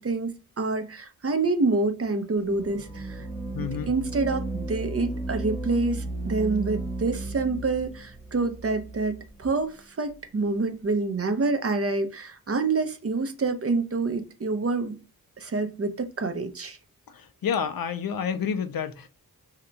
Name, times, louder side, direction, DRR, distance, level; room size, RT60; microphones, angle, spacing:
voice 1, 0.0-3.3 3.6-15.0 15.4-16.8, right 3 dB, 40° right, 0.6 m, -27 dB
sound 1, 2.4-9.6, right 2 dB, 5° left, 0.9 m, -34 dB
voice 2, 3.5-3.9 17.4-19.1, left 7 dB, 70° left, 0.5 m, -29 dB
2.9 x 2.2 x 3.7 m
wide cardioid pair, 70°, 37 cm